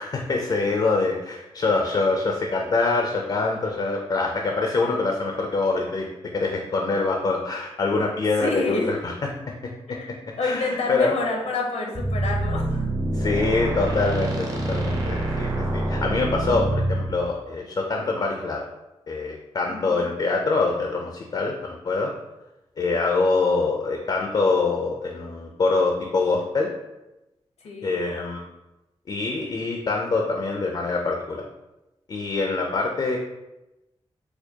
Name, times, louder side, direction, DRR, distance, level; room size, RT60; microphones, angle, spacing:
voice 1, 0.0-6.1 6.3-9.1 10.4-11.1 13.1-18.6 19.1-22.1 22.8-26.7 27.8-28.4 29.1-31.4 32.1-33.2, left 3 dB, 40° left, 1 dB, 0.4 m, -24 dB
voice 2, 8.4-8.9 9.9-10.1 10.4-12.9 19.7-20.1 27.6-27.9, left 3 dB, 85° left, 0 dB, 0.7 m, -28 dB
sound 1, 11.9-17.0, right 1 dB, 30° right, 0.7 m, -25 dB
4.3 x 2.2 x 2.7 m, 0.98 s
wide cardioid pair, 120°, 11 cm